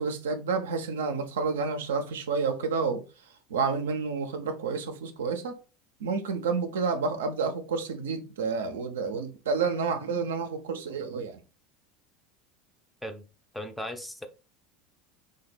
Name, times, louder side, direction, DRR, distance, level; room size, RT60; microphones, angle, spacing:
voice 1, 0.0-3.0 3.5-5.6 6.0-11.4, right 5 dB, 75° right, 0.4 m, -29 dB
voice 2, 13.5-14.3, equal, 5° left, 0.4 m, -37 dB
3.3 x 2.2 x 3.1 m
hypercardioid pair, 75°, 0 cm